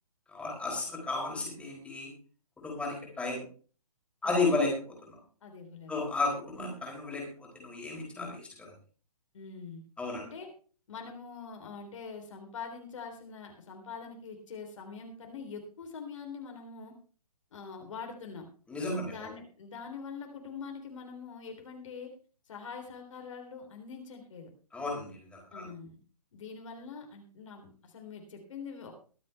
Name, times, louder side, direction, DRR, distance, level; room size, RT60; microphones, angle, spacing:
voice 1, 0.3-2.1 2.6-3.4 4.2-5.2 5.9-8.7 10.0-10.2 18.7-19.3 24.7-25.7, left 3 dB, 5° left, -2 dB, 4.1 m, -33 dB
voice 2, 4.2-4.5 5.4-5.9 9.3-9.9 10.2-10.5 10.9-16.9 17.5-18.5 19.0-22.1 22.5-24.5 25.5-26.0 26.3-28.9, left 5 dB, 55° left, 3 dB, 3.6 m, -44 dB
22.5 x 7.6 x 3.4 m, 0.39 s
figure-of-eight pair, 135°, 20 cm